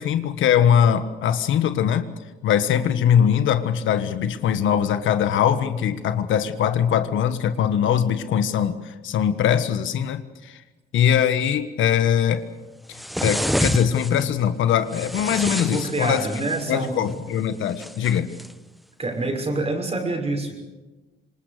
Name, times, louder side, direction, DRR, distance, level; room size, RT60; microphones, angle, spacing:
voice 1, 0.0-2.1 2.4-10.6 10.9-12.4 13.2-16.3 16.7-18.3, left 9 dB, 80° left, 10 dB, 1.4 m, -21 dB
sound 1, 12.9-14.2 14.9-16.7 17.8-18.5, equal, ahead, 0.7 m, -28 dB
voice 2, 15.7-17.1 19.0-20.6, right 2 dB, 30° right, 4 dB, 6.1 m, -26 dB
26.0 x 20.5 x 6.8 m, 1.1 s
cardioid pair, 90°, 20 cm